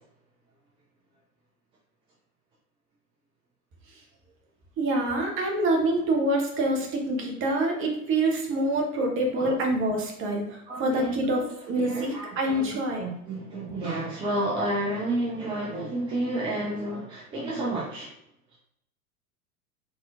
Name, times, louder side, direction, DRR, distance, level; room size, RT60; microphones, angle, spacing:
voice 1, 4.8-13.1, right 1 dB, 30° right, 1 dB, 1.0 m, -26 dB
voice 2, 10.7-11.5 11.8-18.1, right 1 dB, 15° right, -5 dB, 0.5 m, -31 dB
3.8 x 3.6 x 2.5 m, 0.78 s
figure-of-eight pair, 85°, 43 cm